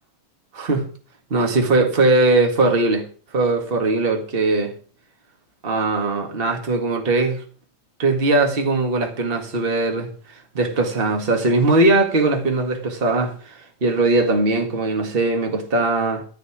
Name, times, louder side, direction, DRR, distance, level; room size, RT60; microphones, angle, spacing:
voice 1, 0.5-0.8 1.3-3.1 3.3-4.7 5.6-7.4 8.0-16.2, right 2 dB, 25° right, 2.0 m, -20 dB
13.5 x 4.9 x 8.7 m
omnidirectional pair, 2.3 m